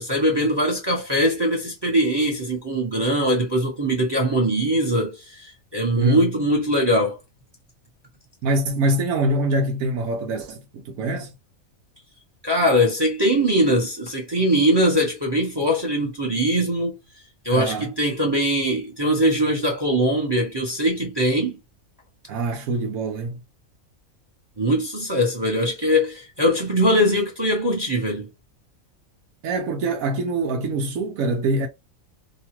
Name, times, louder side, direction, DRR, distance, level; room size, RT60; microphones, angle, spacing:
voice 1, 0.0-7.2 12.4-17.0 17.4-21.6 24.6-28.3, equal, 20° right, 0.7 m, -21 dB
voice 2, 5.9-6.3 8.4-11.3 17.5-17.9 22.3-23.4 29.4-31.7, right 2 dB, 80° right, 1.1 m, -24 dB
2.8 x 2.3 x 2.9 m
omnidirectional pair, 1.5 m